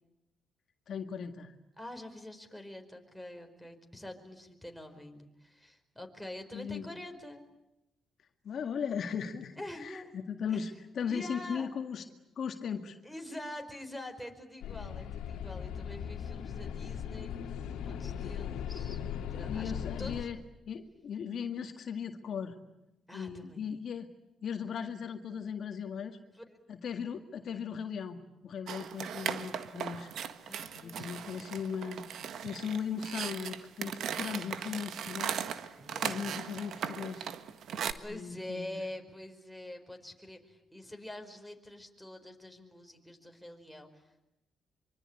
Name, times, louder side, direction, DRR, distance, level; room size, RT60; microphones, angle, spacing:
voice 1, 0.9-1.5 6.5-6.9 8.4-12.0 12.4-13.0 19.5-20.4 20.7-22.6 23.1-24.1 24.4-26.2 26.7-30.1 30.8-32.1 32.4-35.4 36.0-37.3 38.1-38.8, left 7 dB, 60° left, 6 dB, 1.9 m, -37 dB
voice 2, 1.8-7.4 9.6-10.1 10.5-10.6 11.0-11.7 13.0-19.0 19.3-19.7 20.0-20.3 23.1-23.7 26.3-26.6 30.5-31.4 35.8-36.4 38.0-44.3, left 1 dB, ahead, 3 dB, 4.8 m, -46 dB
sound 1, 14.6-20.2, left 8 dB, 90° left, 2.2 m, -38 dB
sound 2, 28.7-37.9, right 8 dB, 70° right, 1.6 m, -38 dB
25.0 x 24.5 x 9.8 m, 0.91 s
cardioid pair, 90°, 0 cm